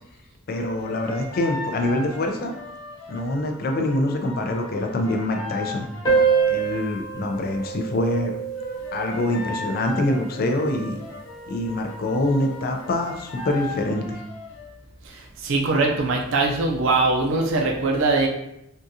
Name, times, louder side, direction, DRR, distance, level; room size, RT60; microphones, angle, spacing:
sound 1, 0.5-6.7 8.5-14.7, left 4 dB, 85° left, 0.8 m, -38 dB
voice 1, 0.5-2.5 3.1-5.9 6.5-8.3 8.9-11.0 11.5-14.2, left 1 dB, 50° left, 4 dB, 0.4 m, -25 dB
sound 2, 6.0-11.0, right 6 dB, 20° left, 1.0 m, -26 dB
voice 2, 15.0-18.3, right 3 dB, 80° right, 0 dB, 0.5 m, -22 dB
3.7 x 2.4 x 2.7 m, 0.81 s
head